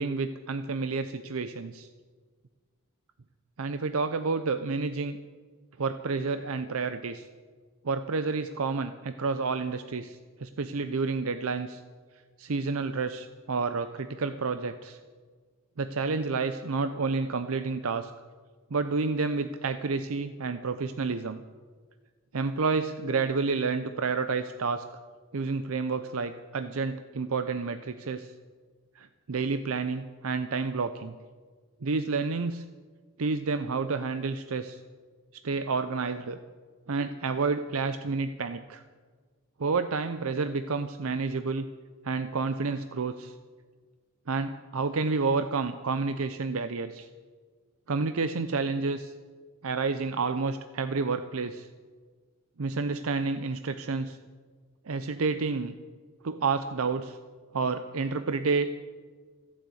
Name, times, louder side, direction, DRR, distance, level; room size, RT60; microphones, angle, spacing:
voice 1, 0.0-1.9 3.6-5.2 5.8-7.2 7.8-11.8 12.4-15.0 15.8-18.1 18.7-21.4 22.3-24.8 25.3-28.3 29.0-31.1 31.8-32.6 33.2-34.8 35.4-36.4 36.9-38.8 39.6-41.7 42.0-43.3 44.3-47.1 47.9-49.1 49.6-51.7 52.6-54.2 54.9-55.7 56.2-57.2 57.5-58.7, right 4 dB, 70° right, 9 dB, 0.6 m, -30 dB
15.0 x 10.0 x 8.3 m, 1.5 s
head